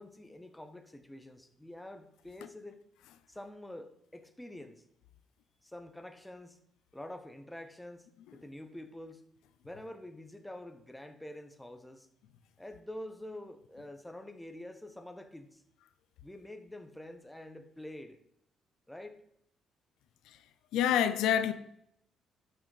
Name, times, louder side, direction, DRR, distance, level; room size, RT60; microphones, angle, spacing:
voice 1, 0.0-2.8 3.3-4.8 5.6-6.6 6.9-8.1 8.3-9.2 9.6-12.1 12.6-15.6 16.2-18.2 18.9-19.2, left 1 dB, 5° left, 1.1 m, -47 dB
voice 2, 20.7-21.5, left 10 dB, 90° left, 0.6 m, -27 dB
12.0 x 6.5 x 4.1 m
cardioid pair, 90°, 0 cm